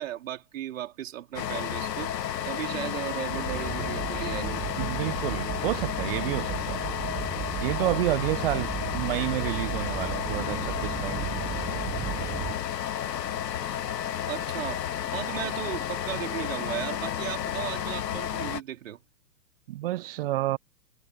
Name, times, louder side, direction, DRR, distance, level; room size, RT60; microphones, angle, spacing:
voice 1, 0.0-4.7 14.3-14.9 15.1-19.0, right 12 dB, 50° right, 4.0 m, -36 dB
sound 1, 1.3-18.6, left 9 dB, 80° left, 0.6 m, -32 dB
sound 2, 3.3-12.5, right 13 dB, 15° right, 1.4 m, -35 dB
voice 2, 4.8-6.8 7.6-11.2 19.7-20.6, right 16 dB, 35° right, 1.0 m, -30 dB
figure-of-eight pair, 115°, 48 cm